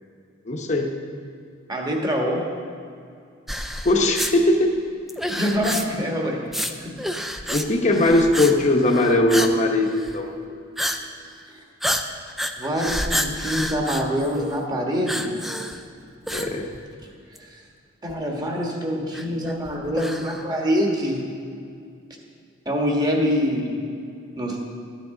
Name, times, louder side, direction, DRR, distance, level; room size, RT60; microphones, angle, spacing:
voice 1, 0.5-0.9 3.8-4.7 7.5-10.3 16.3-16.7, left 1 dB, 35° left, 1 dB, 1.0 m, -19 dB
voice 2, 1.7-2.5 5.3-6.4 6.8-6.9 11.5-11.6 12.6-15.3 17.4-17.6 18.0-21.2 22.6-23.7 24.4-24.6, equal, 20° right, 0 dB, 1.4 m, -25 dB
sound 1, 3.5-4.3 5.1-6.1 6.5-6.7 7.0-7.7 7.9-8.5 8.8-9.6 9.9-10.2 10.8-11.0 11.3-11.4 11.8-14.6 15.1-15.8 16.3-17.0 17.3-17.4 18.1-18.2 19.1-20.4, equal, ahead, 0.4 m, -29 dB
13.0 x 9.6 x 3.9 m, 2.4 s
head